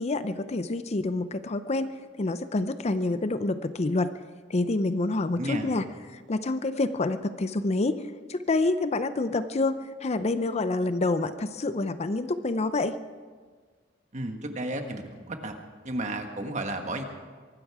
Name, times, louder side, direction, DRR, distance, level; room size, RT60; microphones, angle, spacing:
voice 1, 0.0-1.9 2.2-4.2 4.5-5.8 6.1-8.0 8.3-9.8 10.0-13.0, left 2 dB, 35° left, 12 dB, 0.5 m, -27 dB
voice 2, 5.4-5.7 14.1-15.5 15.8-17.0, right 1 dB, 40° right, 5 dB, 1.5 m, -33 dB
23.5 x 13.0 x 4.8 m, 1.5 s
head